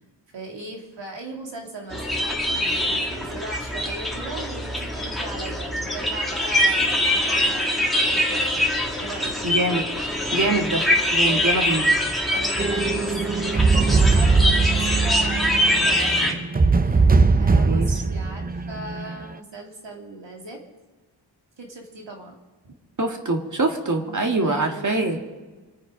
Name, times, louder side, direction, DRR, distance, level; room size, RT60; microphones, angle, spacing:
voice 1, 0.3-8.6 9.0-9.4 11.3-12.0 12.3-16.4 16.8-20.6 21.6-22.4 22.6-22.8 24.4-25.2, right 2 dB, 70° right, 1 dB, 3.1 m, -38 dB
sound 1, 1.9-16.3, left 1 dB, ahead, 2.4 m, -23 dB
voice 2, 9.4-9.8 10.3-10.8 11.1-11.9 17.5-18.0 23.0-25.2, right 2 dB, 40° right, 4 dB, 2.0 m, -24 dB
sound 2, 12.6-19.3, right 4 dB, 20° right, 0.5 m, -20 dB
27.0 x 9.3 x 5.2 m, 1.3 s
wide cardioid pair, 125°, 46 cm